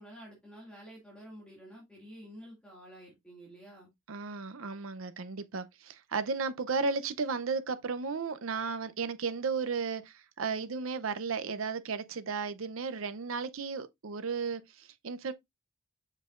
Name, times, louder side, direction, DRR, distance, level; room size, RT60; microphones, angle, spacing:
voice 1, 0.0-3.9, equal, 5° left, 2.1 m, -50 dB
voice 2, 4.1-15.3, right 5 dB, 85° right, 0.6 m, -34 dB
7.3 x 5.5 x 2.5 m
head